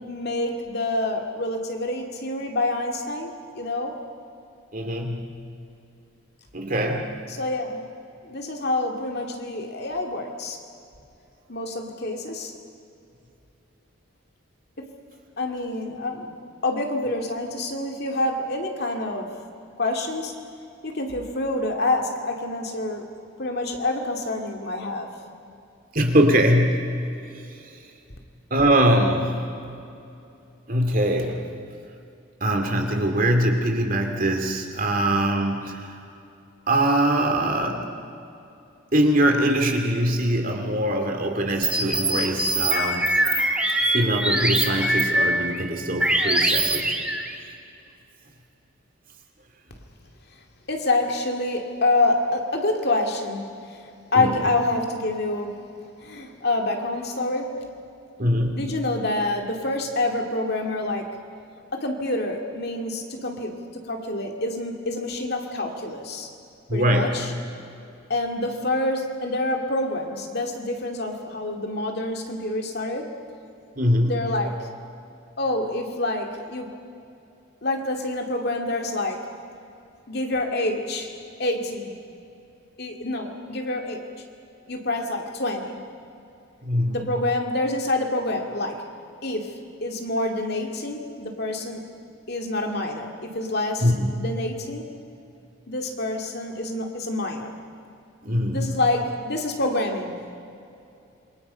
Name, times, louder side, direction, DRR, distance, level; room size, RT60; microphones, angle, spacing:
voice 1, 0.0-4.0 7.3-7.8 8.2-10.6 11.5-12.5 14.8-14.9 15.4-16.4 16.6-19.4 19.8-20.4 20.8-23.1 23.4-25.1 50.7-55.7 56.0-57.7 58.5-61.2 61.7-66.3 66.7-67.3 68.1-73.1 74.1-74.7 75.4-76.7 77.6-79.3 80.1-81.1 81.4-81.9 82.8-84.0 84.7-85.8 86.9-88.9 89.2-91.8 92.3-93.9 94.2-94.9 95.7-97.5 98.5-100.1, left 2 dB, 50° left, 2 dB, 2.4 m, -27 dB
voice 2, 4.7-5.3 6.5-7.1 25.9-27.0 28.5-29.4 29.6-29.8 30.7-31.4 32.4-35.9 36.7-37.9 38.9-43.2 43.9-47.0 54.1-54.4 58.2-58.7 66.7-67.2 73.8-74.2 86.6-87.0 93.8-94.1 98.2-98.8, right 1 dB, 40° right, 3 dB, 2.4 m, -22 dB
sound 1, 41.6-45.6 46.0-47.3, right 1 dB, 5° right, 1.6 m, -23 dB
27.0 x 23.5 x 5.7 m, 2.6 s
head